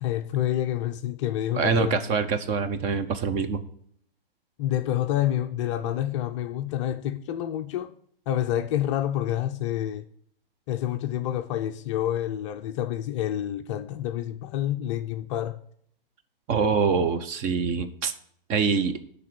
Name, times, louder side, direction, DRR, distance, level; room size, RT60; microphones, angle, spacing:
voice 1, 0.0-2.0 4.6-7.9 8.3-10.0 10.7-15.6, left 12 dB, 30° left, 0.5 m, -28 dB
voice 2, 1.5-3.6 16.5-18.1 18.5-19.0, right 5 dB, 25° right, 0.8 m, -25 dB
11.5 x 4.0 x 6.8 m
hypercardioid pair, 135°, 29 cm